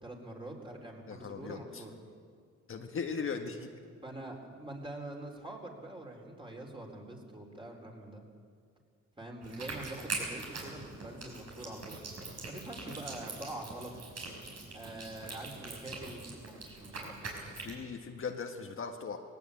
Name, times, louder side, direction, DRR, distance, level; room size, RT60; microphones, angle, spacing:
voice 1, 0.0-1.9 4.0-8.2 9.2-12.0 12.5-13.9 14.7-17.3, right 1 dB, 15° right, 1 dB, 4.2 m, -45 dB
voice 2, 1.1-1.8 2.7-3.7 12.8-13.0 17.6-19.2, left 5 dB, 45° left, 4 dB, 1.6 m, -38 dB
sound 1, 9.4-17.7, right 3 dB, 55° right, 6.0 m, -43 dB
19.0 x 18.0 x 8.6 m, 2.1 s
cardioid pair, 90°, 30 cm